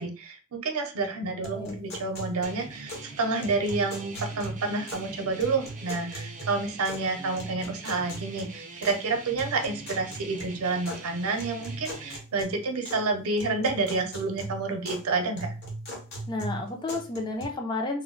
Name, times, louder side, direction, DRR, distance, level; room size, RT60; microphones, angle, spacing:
voice 1, 0.0-15.5, right 3 dB, 85° right, 4 dB, 0.6 m, -29 dB
sound 1, 1.4-3.1 3.4-5.1 5.4-7.1 7.4-9.0 9.4-11.0 11.4-13.1 13.4-15.1 15.4-17.4, right 1 dB, 50° left, 0.9 m, -39 dB
voice 2, 1.4-1.8 16.3-18.0, left 2 dB, 20° left, 2 dB, 0.4 m, -32 dB
sound 2, 2.4-12.2, right 3 dB, 35° right, 0.5 m, -44 dB
2.2 x 2.1 x 3.7 m, 0.33 s
head